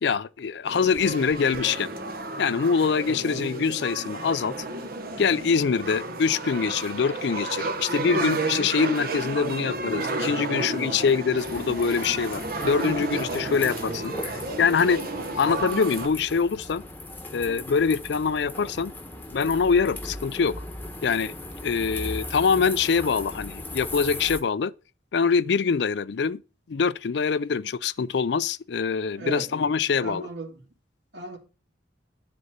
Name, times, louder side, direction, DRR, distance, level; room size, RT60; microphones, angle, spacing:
voice 1, 0.0-1.9 2.4-4.5 5.2-15.0 15.4-16.8 17.3-18.9 19.3-20.6 21.0-21.3 21.6-24.7 25.1-26.4 26.7-30.3, left 5 dB, 60° left, 0.4 m, -24 dB
sound 1, 0.6-16.1, right 2 dB, 50° right, 1.0 m, -32 dB
voice 2, 3.1-3.4 29.2-29.5 30.0-30.6 31.1-31.4, right 3 dB, 65° right, 2.3 m, -36 dB
sound 2, 11.4-24.4, left 2 dB, 10° left, 1.1 m, -38 dB
9.8 x 4.3 x 6.6 m
head